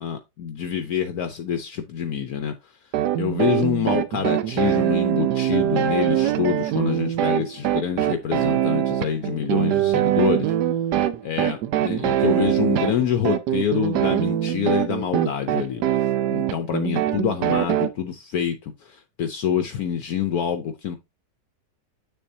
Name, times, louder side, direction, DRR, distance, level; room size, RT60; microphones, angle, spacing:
voice 1, 0.0-2.5 3.2-10.5 11.2-15.8 16.3-21.0, left 8 dB, 65° left, 1.1 m, -26 dB
sound 1, 2.9-17.9, right 11 dB, 70° right, 1.2 m, -23 dB
7.5 x 6.9 x 2.7 m
omnidirectional pair, 1.9 m